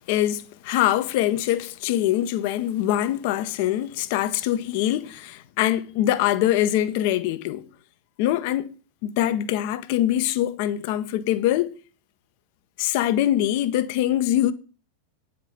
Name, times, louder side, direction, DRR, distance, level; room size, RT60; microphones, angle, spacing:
voice 1, 0.0-7.7 8.2-8.7 9.0-11.8 12.8-14.5, left 13 dB, 45° left, 0.7 m, -23 dB
9.1 x 5.2 x 6.9 m
figure-of-eight pair, 90°, 0 cm